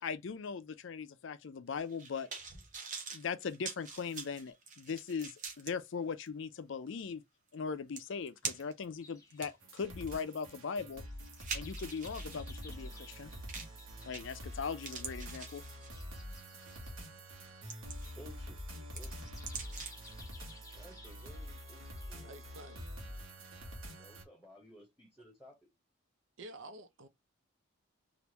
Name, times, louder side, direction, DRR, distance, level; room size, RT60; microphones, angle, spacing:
voice 1, 0.0-2.3 3.1-7.2 7.5-11.0 11.5-13.3 14.0-15.6, left 5 dB, 60° left, 0.4 m, -39 dB
sound 1, 1.8-5.7 6.3-6.4 7.5-7.6 8.0-8.8 9.3-12.4 13.5-13.8 14.1-14.5 14.8-16.1 16.7-16.9 17.4-18.3 18.6-20.1 20.4-20.5, right 5 dB, 35° right, 0.9 m, -44 dB
sound 2, 9.0-23.5, left 4 dB, 15° left, 0.6 m, -60 dB
sound 3, 9.6-24.2, equal, 80° right, 1.1 m, -46 dB
voice 2, 17.8-19.3 20.7-22.8 23.9-25.7, equal, ahead, 1.0 m, -57 dB
voice 3, 22.2-22.8 26.4-27.1, right 1 dB, 60° right, 0.5 m, -49 dB
3.4 x 2.5 x 2.9 m
head